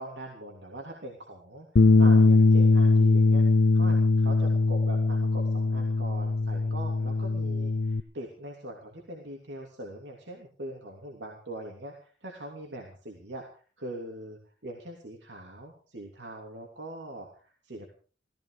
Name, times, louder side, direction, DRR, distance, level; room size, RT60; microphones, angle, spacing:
voice 1, 0.0-3.4 3.7-17.9, right 1 dB, 80° right, 0 dB, 3.1 m, -42 dB
Bass guitar, 1.8-8.0, left 3 dB, 85° left, 0.7 m, -21 dB
17.5 x 15.5 x 5.0 m, 0.39 s
head